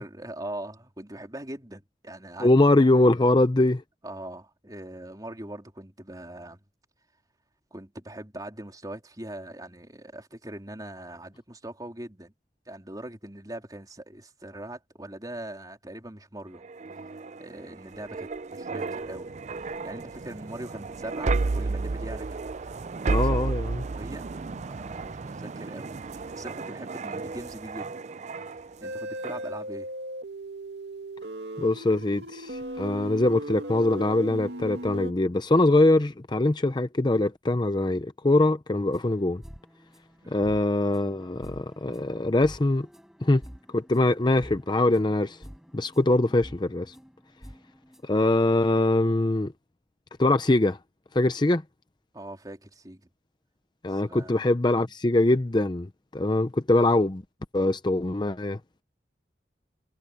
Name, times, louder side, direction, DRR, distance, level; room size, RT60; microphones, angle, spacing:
voice 1, 0.0-2.5 4.0-6.6 7.7-12.3 12.7-16.6 17.4-19.3 19.8-23.4 23.9-24.3 24.6-28.0 28.8-29.9 40.2-40.4 52.1-53.1 53.9-54.4 54.7-54.9, right 1 dB, 20° right, 3.6 m, -41 dB
voice 2, 2.4-3.8 23.1-23.8 31.6-39.4 40.3-42.9 43.2-43.4 43.7-45.4 45.7-46.9 48.0-49.5 50.2-50.8 51.1-51.6 53.8-57.2 57.5-58.6, left 2 dB, 25° left, 0.6 m, -23 dB
sound 1, 16.5-28.9 29.2-29.5, right 3 dB, 40° right, 0.4 m, -32 dB
sound 2, 28.8-35.1, right 1 dB, 75° right, 2.4 m, -37 dB
sound 3, 38.9-48.2, equal, 5° right, 5.2 m, -49 dB
head